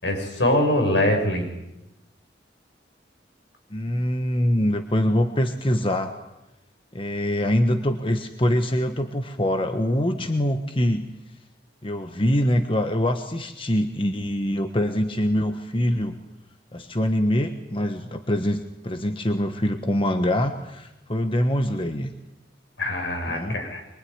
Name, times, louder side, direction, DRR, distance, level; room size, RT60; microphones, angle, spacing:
voice 1, 0.0-1.5 22.8-23.8, left 1 dB, 80° left, 2 dB, 7.2 m, -23 dB
voice 2, 3.7-6.1 6.9-11.1 11.8-16.2 16.7-22.1 23.3-23.6, left 1 dB, 30° left, 6 dB, 1.3 m, -24 dB
23.5 x 23.5 x 9.7 m, 0.92 s
head